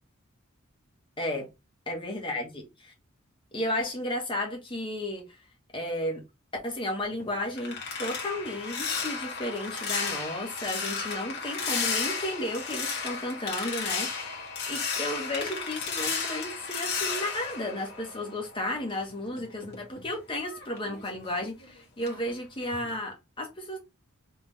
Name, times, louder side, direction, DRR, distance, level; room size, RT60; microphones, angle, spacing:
voice 1, 1.9-2.9 3.5-5.3 5.7-6.2 6.6-23.8, left 1 dB, 25° left, 1.4 m, -33 dB
sound 1, 7.0-18.7 19.0-21.7 22.0-22.3 22.7-23.0, left 5 dB, 50° left, 1.5 m, -34 dB
3.7 x 3.5 x 3.3 m
head